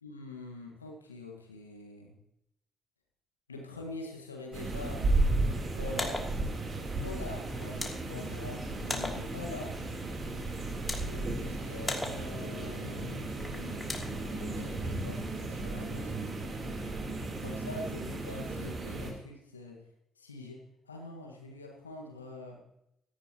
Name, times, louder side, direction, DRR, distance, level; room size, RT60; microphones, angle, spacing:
voice 1, 0.0-2.2 3.5-5.0 5.7-6.2 6.8-9.8 11.0-13.8 14.3-16.4 17.4-19.8 20.2-22.6, left 2 dB, 90° left, 1 dB, 1.7 m, -44 dB
sound 1, 4.5-19.1, right 2 dB, 45° right, 3.6 m, -34 dB
sound 2, 5.8-14.7, left 2 dB, 20° left, 3.0 m, -42 dB
17.0 x 14.0 x 3.0 m, 0.82 s
figure-of-eight pair, 40°, 0 cm